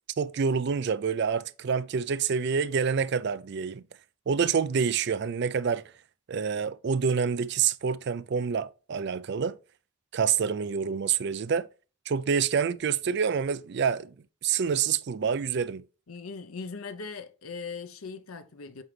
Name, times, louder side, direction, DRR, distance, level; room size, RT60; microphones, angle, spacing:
voice 1, 0.2-3.8 4.3-5.8 6.3-9.6 10.1-11.7 12.1-14.1 14.4-15.8, right 6 dB, 50° right, 0.4 m, -27 dB
voice 2, 16.1-18.8, left 4 dB, 80° left, 0.7 m, -39 dB
8.1 x 3.9 x 3.2 m
head